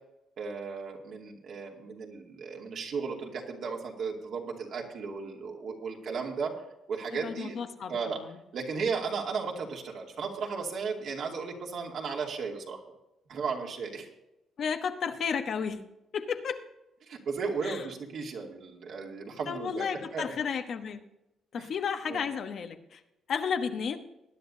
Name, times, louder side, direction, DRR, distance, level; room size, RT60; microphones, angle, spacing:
voice 1, 0.4-6.5 6.9-7.6 7.9-8.2 8.5-12.8 13.3-14.1 17.1-19.9 20.1-20.2 21.6-21.7 22.1-22.2, right 5 dB, 65° right, 0 dB, 2.6 m, -35 dB
voice 2, 7.1-8.4 14.6-15.8 16.1-16.6 17.6-17.8 19.5-21.0 21.5-23.0 23.3-24.0, left 6 dB, 60° left, 6 dB, 1.1 m, -33 dB
20.0 x 10.5 x 2.8 m, 0.90 s
cardioid pair, 90°, 0 cm